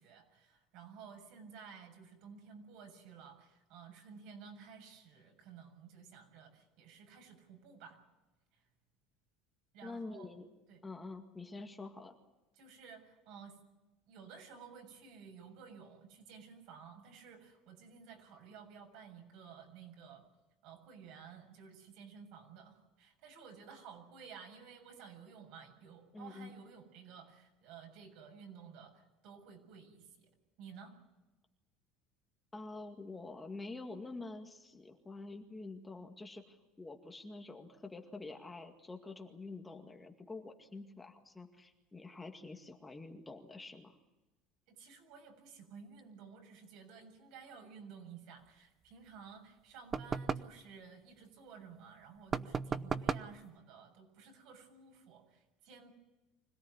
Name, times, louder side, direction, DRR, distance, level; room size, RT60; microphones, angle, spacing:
voice 1, 0.0-8.0 8.5-8.7 9.7-10.3 10.7-10.8 12.5-13.6 14.1-20.2 20.6-30.3 30.6-30.9 44.7-55.9, right 6 dB, 65° right, 4 dB, 7.0 m, -54 dB
voice 2, 9.8-10.5 10.8-12.1 26.1-26.5 32.5-43.9, left 3 dB, 15° left, 3 dB, 2.1 m, -47 dB
sound 1, 49.9-50.6 52.3-53.4, right 5 dB, 25° right, 0.8 m, -35 dB
25.5 x 17.5 x 9.6 m, 1.1 s
cardioid pair, 135°, 0 cm